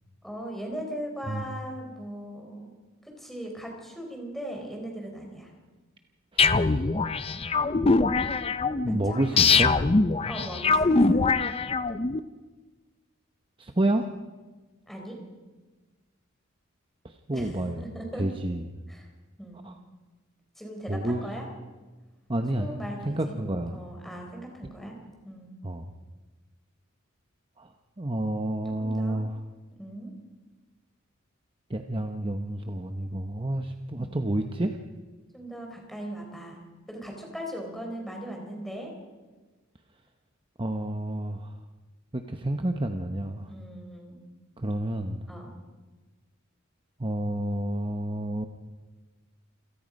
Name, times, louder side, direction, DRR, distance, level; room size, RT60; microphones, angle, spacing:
voice 1, 0.2-2.7 3.0-5.5 9.0-9.5 10.2-11.2 14.9-15.2 17.3-18.2 18.9-19.1 19.4-19.7 20.6-21.5 22.6-23.4 23.7-25.0 25.2-25.6 28.8-29.2 29.8-30.1 33.9-34.2 35.3-36.6 36.9-38.9 43.5-44.2 45.3-45.5, equal, ahead, 1 dB, 4.4 m, -39 dB
voice 2, 6.3-6.9 7.9-8.0 8.8-9.7 13.6-14.0 17.0-17.8 18.2-18.6 19.6-19.7 20.9-21.2 22.3-23.8 25.6-25.9 27.6-27.7 28.0-29.4 31.7-34.8 40.6-41.6 42.1-43.5 44.6-45.2 47.0-48.5, right 1 dB, 25° right, 5 dB, 0.9 m, -30 dB
sound 1, 6.4-12.2, left 4 dB, 30° left, 0.6 m, -23 dB
28.0 x 17.0 x 5.3 m, 1.3 s
head